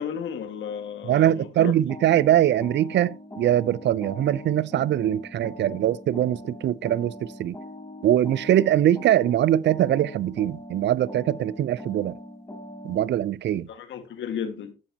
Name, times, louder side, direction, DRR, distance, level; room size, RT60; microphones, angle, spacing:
voice 1, 0.0-1.7 13.7-14.7, left 8 dB, 70° left, 1.8 m, -33 dB
voice 2, 1.1-7.6 8.0-12.2 12.8-13.7, right 12 dB, 65° right, 0.5 m, -22 dB
sound 1, 1.9-13.2, left 1 dB, 15° left, 3.6 m, -41 dB
14.5 x 6.1 x 2.9 m
cardioid pair, 90°, 20 cm